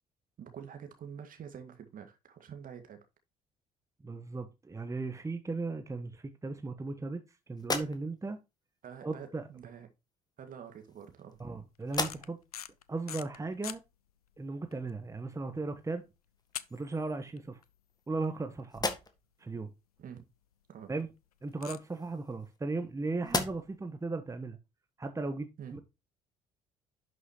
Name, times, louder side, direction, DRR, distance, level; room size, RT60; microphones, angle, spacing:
voice 1, 0.4-3.0 8.8-9.9 10.4-11.5 20.0-20.3 20.7-20.9 25.6-25.8, right 8 dB, 50° right, 2.0 m, -47 dB
voice 2, 4.0-8.4 9.0-9.5 11.4-12.4 12.9-13.8 14.4-16.0 16.7-17.6 18.1-18.9 19.4-19.7 20.9-21.1 21.4-24.6 25.0-25.8, right 3 dB, 15° right, 1.2 m, -36 dB
sound 1, 7.6-8.4 9.5-9.7 10.6-11.5 11.8-12.6 13.1-13.2 15.8-15.9 16.4-17.1 17.6-18.4 18.7-19.4 21.4-22.9 23.2-23.9, left 3 dB, 20° left, 1.8 m, -38 dB
sound 2, 11.8-13.8 14.4-14.5 14.7-14.9 15.3-15.4 16.5-17.4 17.6-17.7 18.2-18.3 18.6-18.7 18.9-19.0 20.2-20.3 21.6-21.8, left 10 dB, 85° left, 0.5 m, -42 dB
11.0 x 6.3 x 3.0 m
figure-of-eight pair, 50°, 19 cm